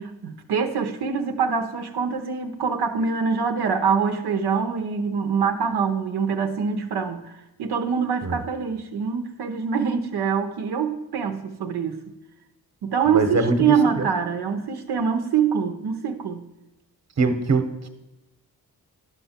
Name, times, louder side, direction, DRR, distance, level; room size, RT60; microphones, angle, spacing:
voice 1, 0.0-7.3 7.6-12.1 12.8-16.4, right 6 dB, 90° right, 4 dB, 0.7 m, -24 dB
voice 2, 13.1-14.1 17.2-17.9, right 3 dB, 45° right, 8 dB, 1.0 m, -23 dB
11.0 x 5.7 x 4.3 m, 0.95 s
cardioid pair, 65°, 38 cm